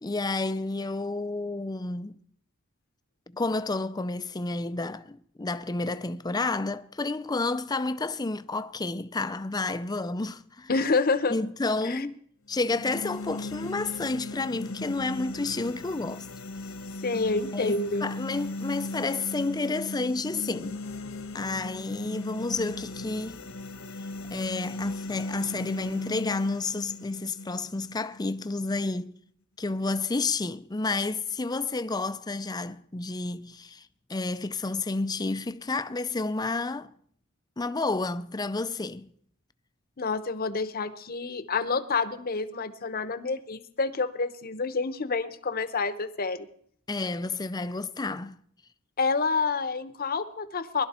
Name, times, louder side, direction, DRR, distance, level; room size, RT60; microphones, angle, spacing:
voice 1, 0.0-2.1 3.3-10.7 11.3-12.2 12.5-16.3 17.1-17.2 17.5-20.8 21.3-23.4 24.3-29.1 29.6-36.9 37.6-39.1 46.9-48.3, left 3 dB, 20° left, 0.5 m, -30 dB
voice 2, 10.7-11.4 11.8-12.0 17.0-18.0 40.0-46.5 49.0-50.8, left 4 dB, 45° left, 0.9 m, -28 dB
sound 1, 12.5-28.5, left 2 dB, 70° left, 1.3 m, -38 dB
21.0 x 12.0 x 4.3 m
head